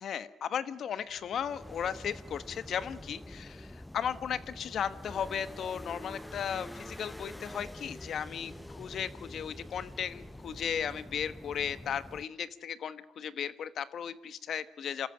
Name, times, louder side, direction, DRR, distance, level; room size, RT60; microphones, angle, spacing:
voice 1, 0.0-15.1, left 8 dB, 65° left, 14 dB, 1.2 m, -36 dB
sound 1, 1.0-12.2, left 1 dB, 10° left, 0.8 m, -46 dB
27.5 x 14.0 x 8.9 m, 1.1 s
cardioid pair, 90°, 0 cm